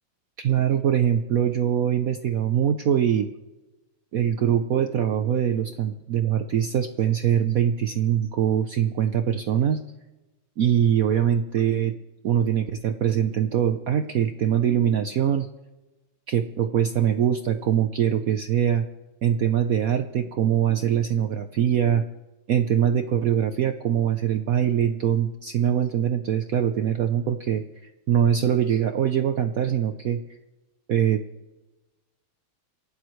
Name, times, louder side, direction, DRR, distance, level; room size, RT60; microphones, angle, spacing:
voice 1, 0.4-3.3 4.1-9.8 10.6-12.0 12.2-15.5 16.3-18.9 19.2-22.0 22.5-30.2 30.9-31.2, right 9 dB, 70° right, 8 dB, 0.8 m, -23 dB
27.0 x 12.0 x 3.2 m, 1.1 s
omnidirectional pair, 2.2 m